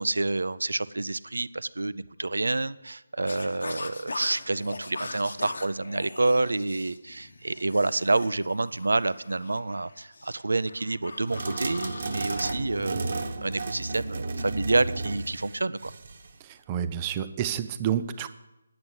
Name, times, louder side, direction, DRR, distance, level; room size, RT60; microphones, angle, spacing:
voice 1, 0.0-15.9, right 2 dB, 90° right, 16 dB, 0.5 m, -28 dB
sound 1, 3.3-12.5, left 3 dB, 75° left, 1.0 m, -41 dB
sound 2, 11.3-16.3, right 3 dB, 50° right, 1.1 m, -33 dB
voice 2, 16.4-18.3, right 9 dB, 20° right, 11 dB, 0.5 m, -29 dB
9.6 x 7.9 x 7.2 m, 0.96 s
figure-of-eight pair, 165°, 0 cm